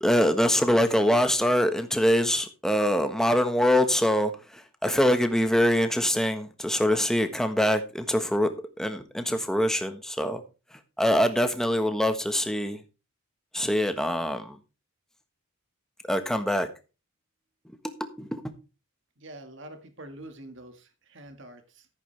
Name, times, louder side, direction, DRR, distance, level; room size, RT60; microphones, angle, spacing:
voice 1, 0.0-8.5 8.8-10.4 10.7-12.8 13.5-14.6 16.0-16.7 17.6-17.8 18.2-18.4, equal, ahead, 1.3 m, -24 dB
voice 2, 19.2-21.9, right 1 dB, 55° right, 1.8 m, -45 dB
14.5 x 8.5 x 3.4 m
head